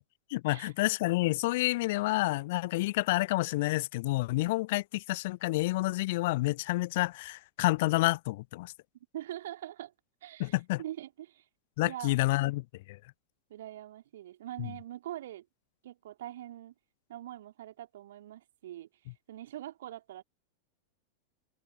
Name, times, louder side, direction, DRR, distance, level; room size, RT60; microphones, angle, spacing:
voice 1, 0.3-8.7 10.4-10.8 11.8-13.0 14.6-14.7, left 20 dB, 50° left, 0.6 m, -29 dB
voice 2, 9.1-9.9 10.2-11.5 11.9-12.2 13.5-15.5 15.8-16.7 17.1-18.9 19.3-20.2, right 13 dB, 60° right, 2.3 m, -43 dB
figure-of-eight pair, 90°, 0 cm